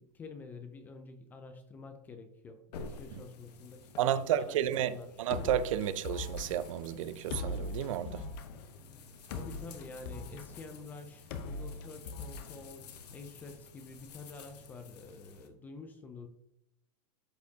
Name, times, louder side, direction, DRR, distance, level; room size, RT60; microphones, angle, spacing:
voice 1, 0.0-5.1 9.3-16.3, left 3 dB, 10° left, 0.3 m, -48 dB
sound 1, 2.7-15.5, left 3 dB, 90° left, 1.3 m, -52 dB
voice 2, 4.0-8.3, right 10 dB, 55° right, 0.5 m, -32 dB
sound 2, 5.3-13.2, left 3 dB, 40° left, 0.8 m, -41 dB
13.0 x 4.3 x 2.8 m
supercardioid pair, 170°, 20 cm